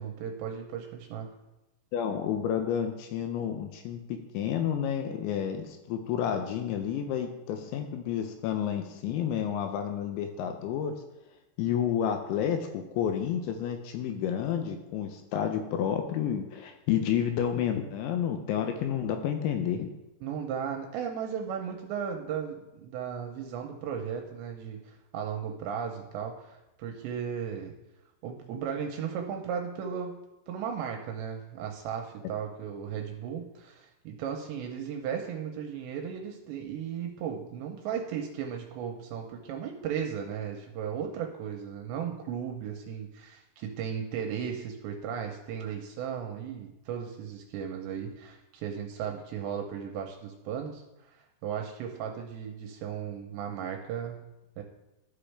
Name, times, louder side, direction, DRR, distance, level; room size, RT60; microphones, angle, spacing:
voice 1, 0.0-1.3 20.2-27.7 28.2-50.8 51.4-54.3 54.6-54.7, right 7 dB, 80° right, 3 dB, 2.7 m, -36 dB
voice 2, 1.9-11.0 11.6-19.9, left 9 dB, 80° left, 6 dB, 2.8 m, -30 dB
13.0 x 6.1 x 3.3 m, 0.95 s
omnidirectional pair, 5.6 m